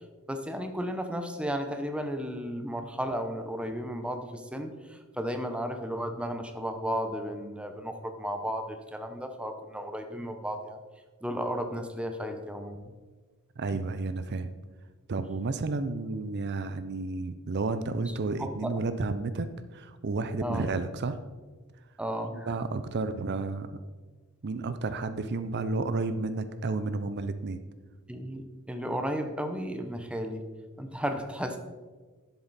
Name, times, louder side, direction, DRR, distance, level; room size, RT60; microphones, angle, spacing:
voice 1, 0.3-10.8 11.2-12.8 18.4-18.8 20.4-20.7 22.0-22.5 28.1-30.5 30.8-31.6, equal, 5° right, 6 dB, 0.8 m, -34 dB
voice 2, 13.6-14.5 15.1-21.2 22.3-23.8 24.4-27.6, right 3 dB, 50° right, 11 dB, 0.5 m, -31 dB
11.0 x 7.8 x 4.1 m, 1.4 s
head